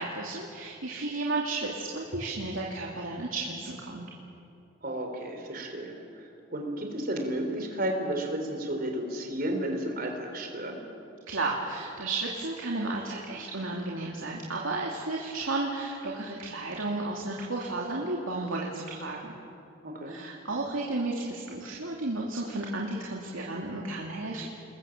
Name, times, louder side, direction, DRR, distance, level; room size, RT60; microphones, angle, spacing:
voice 1, 0.0-4.1 11.3-19.3 20.1-24.5, right 2 dB, 85° right, -2 dB, 2.7 m, -33 dB
voice 2, 4.8-10.8 19.8-20.2, right 1 dB, 45° right, 3 dB, 3.9 m, -33 dB
28.5 x 21.0 x 7.3 m, 2.7 s
head